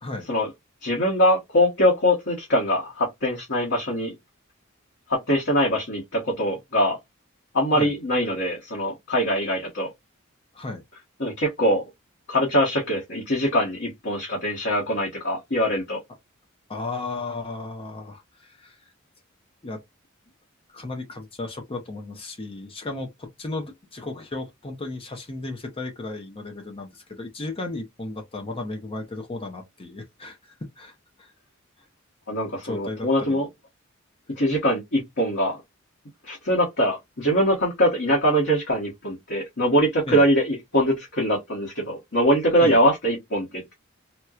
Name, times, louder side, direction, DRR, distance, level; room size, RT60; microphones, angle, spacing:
voice 1, 0.8-4.1 5.1-7.0 7.5-9.9 11.2-11.8 12.3-16.0 32.3-33.5 34.4-35.6 36.2-43.7, equal, 60° left, 1.2 m, -23 dB
voice 2, 16.7-18.9 19.6-19.8 20.7-31.3 32.6-33.4 40.1-40.2 42.6-42.8, left 2 dB, 25° left, 0.7 m, -35 dB
4.3 x 2.2 x 2.3 m
head